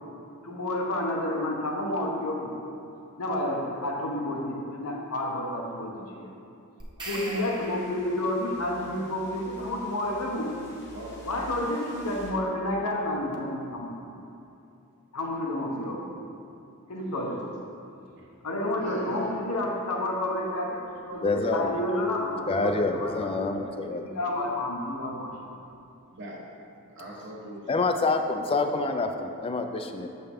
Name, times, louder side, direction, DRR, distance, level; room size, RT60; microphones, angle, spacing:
voice 1, 0.4-2.6 3.2-6.3 7.0-10.6 11.3-14.1 15.1-16.1 16.9-17.6 18.4-20.8 21.1-23.3 23.6-25.3, left 1 dB, 80° left, -1 dB, 1.0 m, -30 dB
sound 1, 6.8-8.4, right 1 dB, 20° right, 1.0 m, -39 dB
voice 2, 7.1-7.5 10.9-11.5 18.8-19.3 20.9-21.2 26.1-26.4 27.0-27.7 28.4-28.7, right 1 dB, 55° right, -3 dB, 1.2 m, -41 dB
sound 2, 7.2-12.3, left 1 dB, 50° left, 1.0 m, -50 dB
voice 3, 21.2-21.7 22.5-24.0 27.7-30.1, left 3 dB, 25° left, 6 dB, 0.3 m, -27 dB
6.7 x 5.6 x 3.5 m, 2.7 s
head